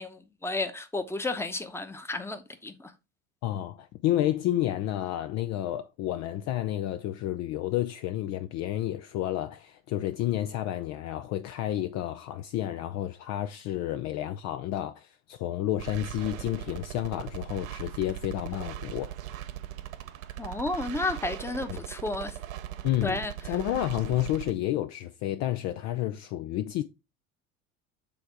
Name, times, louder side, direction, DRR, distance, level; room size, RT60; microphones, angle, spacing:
voice 1, 0.0-2.9 20.4-22.4 23.0-23.3, left 2 dB, 5° left, 0.9 m, -32 dB
voice 2, 3.4-19.2 21.7-21.8 22.8-26.8, left 13 dB, 40° left, 0.5 m, -30 dB
sound 1, 15.8-24.5, right 13 dB, 70° right, 0.8 m, -39 dB
7.0 x 3.5 x 4.5 m
figure-of-eight pair, 65°, 41 cm